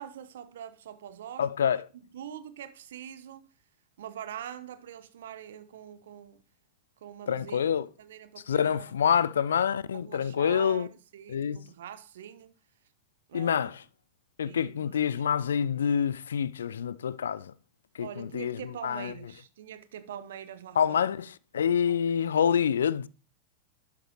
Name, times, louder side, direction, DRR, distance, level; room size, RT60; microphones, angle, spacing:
voice 1, 0.0-1.7 2.1-3.5 4.0-6.4 7.0-9.2 10.0-12.6 13.3-13.7 14.4-15.0 18.0-21.1 21.8-22.2, right 9 dB, 60° right, 0.8 m, -44 dB
voice 2, 1.4-1.8 7.3-7.9 8.5-10.9 11.3-11.6 13.3-13.8 14.4-17.5 18.0-19.1 20.8-23.1, left 8 dB, 65° left, 0.4 m, -27 dB
12.0 x 7.1 x 3.1 m
figure-of-eight pair, 90°, 0 cm